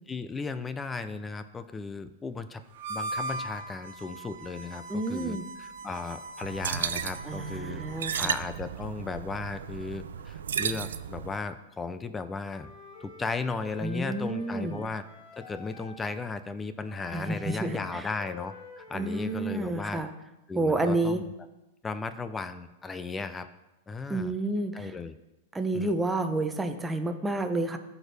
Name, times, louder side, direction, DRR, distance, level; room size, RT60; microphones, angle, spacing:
voice 1, 0.1-2.6 2.9-12.7 13.0-15.0 15.4-20.0 20.5-21.2 21.8-23.5 23.9-24.3 24.7-25.2 25.7-25.9, left 4 dB, 15° left, 11 dB, 0.4 m, -36 dB
Harmonica, 2.7-8.4, right 2 dB, 65° right, 1.0 m, -40 dB
voice 2, 4.9-5.4 7.2-8.3 13.8-14.8 17.1-18.1 18.9-20.1 20.5-21.2 24.1-24.9 25.5-27.8, right 2 dB, 10° right, 7 dB, 0.8 m, -30 dB
sound 1, 6.4-11.4, right 8 dB, 90° right, 0.4 m, -34 dB
Wind instrument woodwind instrument, 12.4-16.0 16.9-19.4, left 4 dB, 55° left, 2.4 m, -48 dB
14.0 x 4.7 x 3.4 m, 0.99 s
hypercardioid pair, 130°, 0 cm